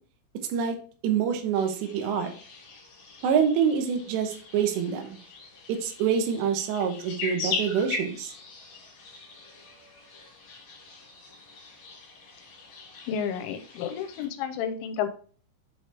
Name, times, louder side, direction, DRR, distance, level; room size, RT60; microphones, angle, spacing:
voice 1, 1.0-2.3 3.2-5.2 5.7-8.3, right 7 dB, 75° right, 4 dB, 3.0 m, -26 dB
sound 1, 1.5-14.3, left 4 dB, 45° left, 3.1 m, -40 dB
voice 2, 13.1-15.1, left 8 dB, 80° left, 9 dB, 3.0 m, -31 dB
7.4 x 4.7 x 3.3 m, 0.43 s
omnidirectional pair, 5.5 m